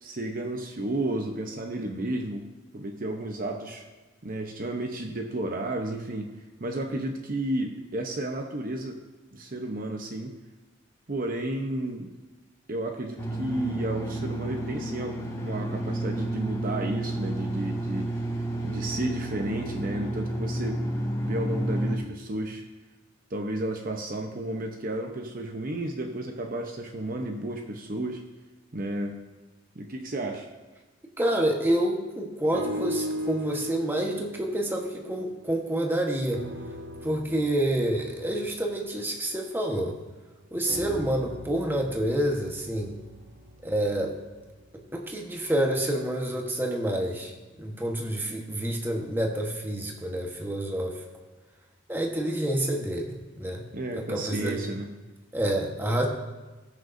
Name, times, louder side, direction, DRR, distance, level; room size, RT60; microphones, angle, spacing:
voice 1, 0.0-2.4 2.7-3.8 4.2-6.3 6.6-9.0 9.3-10.3 11.1-12.1 12.7-18.1 18.6-20.8 21.2-22.6 23.3-28.2 28.7-29.2 29.8-30.5 53.7-54.9, right 1 dB, 45° right, 3 dB, 0.8 m, -32 dB
sound 1, 13.2-22.0, right 1 dB, 15° left, 1.5 m, -31 dB
voice 2, 31.2-36.5 37.0-40.0 40.5-43.0 43.6-44.2 44.7-47.3 47.6-51.0 51.9-53.6 53.9-54.7 55.3-56.1, right 1 dB, 10° right, 0 dB, 1.2 m, -28 dB
sound 2, 32.5-35.9 36.3-40.0 40.7-44.9 45.5-45.6, equal, 75° right, 1.1 m, -39 dB
19.0 x 6.4 x 2.7 m, 1.2 s
head